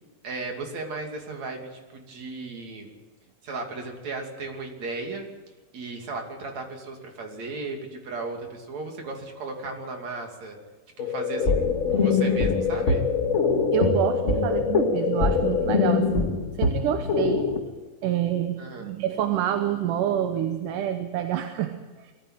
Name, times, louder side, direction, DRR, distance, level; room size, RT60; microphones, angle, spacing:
voice 1, 0.2-2.9 3.4-5.3 5.7-10.6 11.0-13.0 18.6-18.9, right 3 dB, 60° right, 2 dB, 4.0 m, -36 dB
sound 1, 11.0-16.0, left 6 dB, 90° left, 3.3 m, -27 dB
sound 2, 11.4-17.6, left 4 dB, 25° left, 1.8 m, -25 dB
voice 2, 13.7-16.3 16.6-17.5 18.0-22.1, right 10 dB, 85° right, 7 dB, 2.6 m, -27 dB
21.5 x 14.5 x 9.2 m, 1.2 s
omnidirectional pair, 3.6 m